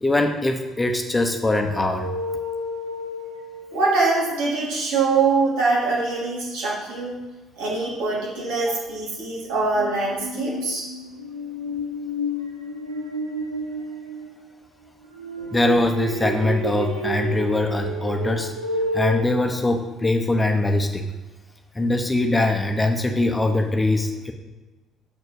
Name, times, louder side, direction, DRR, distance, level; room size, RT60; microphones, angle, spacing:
voice 1, 0.0-2.1 15.5-18.5 18.9-21.1 21.7-24.3, left 2 dB, 15° left, 4 dB, 1.1 m, -22 dB
sound 1, 1.5-4.2 9.5-14.5 15.0-19.3, equal, 85° right, 1.2 m, -31 dB
voice 2, 3.7-7.2 7.6-10.9 15.4-15.5, right 3 dB, 65° right, -5 dB, 3.0 m, -23 dB
6.7 x 6.6 x 6.1 m, 1.2 s
figure-of-eight pair, 50°, 0 cm